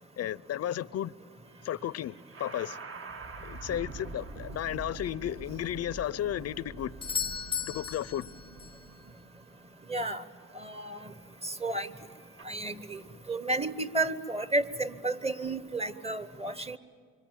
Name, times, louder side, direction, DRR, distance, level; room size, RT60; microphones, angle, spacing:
voice 1, 0.2-1.1 1.6-2.8 3.4-6.9 7.7-8.3, left 11 dB, 55° left, 0.6 m, -34 dB
sound 1, 1.5-12.4, right 3 dB, 45° right, 1.4 m, -46 dB
Doorbell, 7.0-8.9 12.9-13.0, left 7 dB, 15° left, 0.7 m, -35 dB
voice 2, 9.9-10.2 10.5-11.1 11.4-11.9 12.4-13.0 13.3-16.8, right 2 dB, 20° right, 1.2 m, -32 dB
26.5 x 24.5 x 9.1 m
cardioid pair, 90°, 30 cm